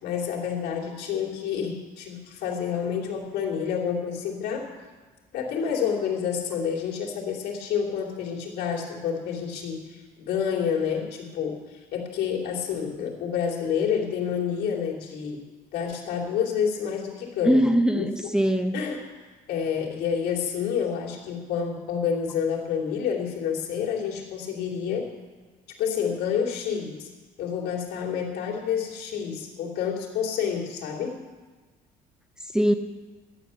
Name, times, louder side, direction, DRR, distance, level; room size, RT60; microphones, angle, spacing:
voice 1, 0.0-4.7 5.3-15.4 15.7-18.1 18.7-19.1 19.5-25.1 25.8-27.1 27.4-31.2, left 7 dB, 75° left, -2 dB, 2.9 m, -29 dB
voice 2, 17.4-18.8 32.5-32.7, equal, 5° right, 5 dB, 0.8 m, -21 dB
12.0 x 9.8 x 7.0 m, 1.3 s
cardioid pair, 110°, 17 cm